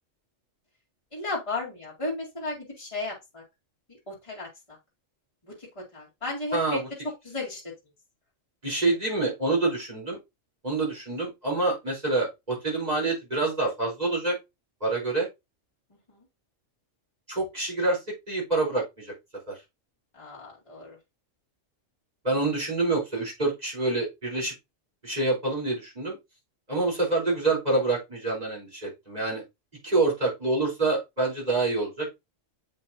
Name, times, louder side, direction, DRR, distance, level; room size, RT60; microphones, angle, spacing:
voice 1, 1.1-3.4 4.1-4.8 5.5-6.8 7.3-7.6 16.1-16.2 20.1-21.0, left 2 dB, 25° left, -4 dB, 2.3 m, -34 dB
voice 2, 6.5-6.9 8.6-10.2 10.6-14.4 14.8-15.3 17.3-19.1 19.5-19.6 22.2-24.5 25.0-26.2 26.7-29.4 29.8-32.1, right 2 dB, 30° right, -4 dB, 3.9 m, -27 dB
7.8 x 5.3 x 2.7 m, 0.21 s
omnidirectional pair, 1.3 m